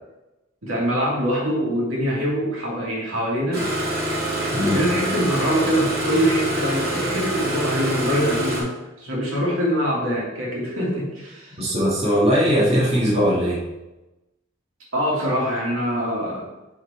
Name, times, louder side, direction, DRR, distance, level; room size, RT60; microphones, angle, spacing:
voice 1, 0.6-3.7 4.6-8.7 9.0-11.6 14.9-16.5, equal, 75° right, -4 dB, 2.3 m, -24 dB
Engine starting, 3.5-8.6, right 1 dB, 50° right, 1.9 m, -25 dB
voice 2, 4.5-4.8 11.6-13.6, equal, 30° right, -6 dB, 1.5 m, -20 dB
5.0 x 4.9 x 4.1 m, 1.0 s
head